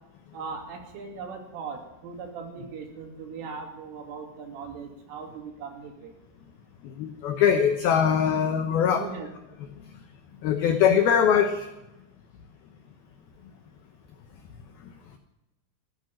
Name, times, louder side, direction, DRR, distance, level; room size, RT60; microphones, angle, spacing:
voice 1, 0.3-6.1 8.8-9.3, right 5 dB, 80° right, 2 dB, 5.1 m, -39 dB
voice 2, 6.8-9.0 10.4-11.7, left 8 dB, 85° left, 7 dB, 2.1 m, -22 dB
15.0 x 12.0 x 7.6 m, 0.98 s
omnidirectional pair, 5.7 m